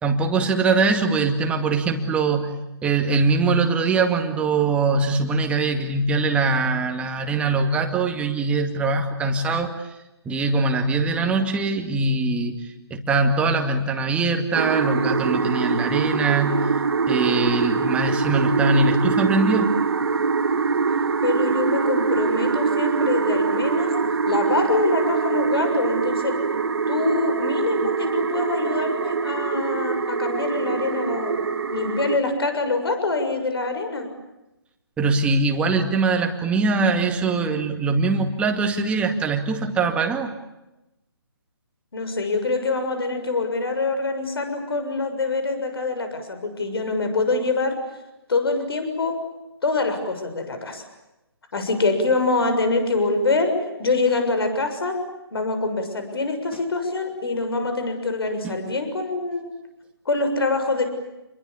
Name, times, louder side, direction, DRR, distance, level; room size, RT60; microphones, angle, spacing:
voice 1, 0.0-2.5 2.8-9.9 10.3-16.7 17.1-19.7 35.0-40.3 58.4-58.6, right 3 dB, 10° right, 4 dB, 2.2 m, -22 dB
sound 1, 14.5-32.2, right 5 dB, 65° right, 2.6 m, -23 dB
voice 2, 21.2-23.9 24.3-26.4 26.9-34.1 41.9-47.8 48.3-49.2 49.6-50.9 51.5-53.5 53.8-55.0 55.3-59.5 60.1-60.9, left 3 dB, 65° left, 7 dB, 7.0 m, -25 dB
29.0 x 22.5 x 8.6 m, 0.95 s
figure-of-eight pair, 150°, 14 cm